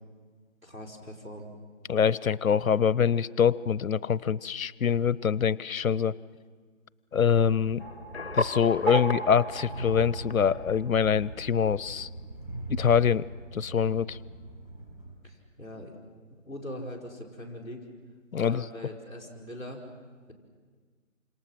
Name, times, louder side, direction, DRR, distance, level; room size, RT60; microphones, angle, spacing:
voice 1, 0.6-1.5 15.2-16.0 16.3-17.8 18.4-19.8, left 1 dB, 10° right, -9 dB, 3.8 m, -41 dB
voice 2, 1.9-6.2 7.1-7.8 8.3-12.1 12.7-13.3 13.5-14.2 18.3-18.6, left 7 dB, 90° left, 21 dB, 0.7 m, -24 dB
Train, 7.3-15.2, right 1 dB, 30° right, 5.7 m, -42 dB
sound 1, 7.8-11.1, right 1 dB, 50° left, 1.1 m, -33 dB
28.0 x 26.5 x 5.9 m, 1.5 s
figure-of-eight pair, 175°, 40 cm